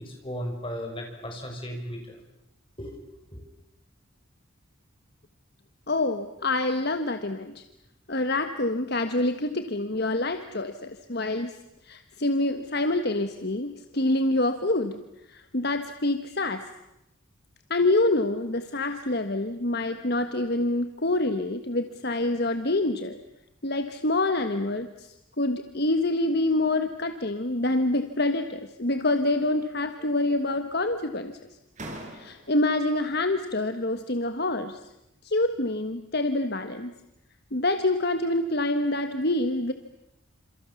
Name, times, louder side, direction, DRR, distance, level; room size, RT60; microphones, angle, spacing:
voice 1, 0.0-2.2 2.8-3.0 3.3-3.4, equal, 25° left, 2 dB, 6.4 m, -36 dB
voice 2, 5.9-7.6 8.1-11.5 11.8-15.0 15.3-16.7 17.7-23.2 23.6-31.4 32.1-34.8 35.2-37.0 37.5-39.7, left 2 dB, 50° left, 8 dB, 1.4 m, -26 dB
sound 1, 27.9-28.5 28.9-29.6 29.9-30.7 31.3-31.4 31.8-32.7, right 1 dB, 35° right, 5.5 m, -45 dB
29.0 x 27.5 x 7.1 m, 0.87 s
head